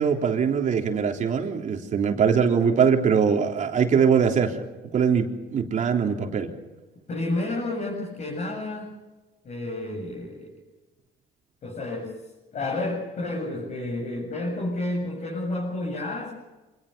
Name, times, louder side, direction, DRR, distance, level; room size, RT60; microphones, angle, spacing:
voice 1, 0.0-4.5 4.9-6.5, right 6 dB, 50° right, 2 dB, 3.6 m, -22 dB
voice 2, 7.1-8.9 9.4-10.5 11.6-12.2 12.5-16.3, left 2 dB, 45° left, -2 dB, 8.0 m, -30 dB
26.5 x 19.5 x 6.9 m, 1.1 s
cardioid pair, 110°, 17 cm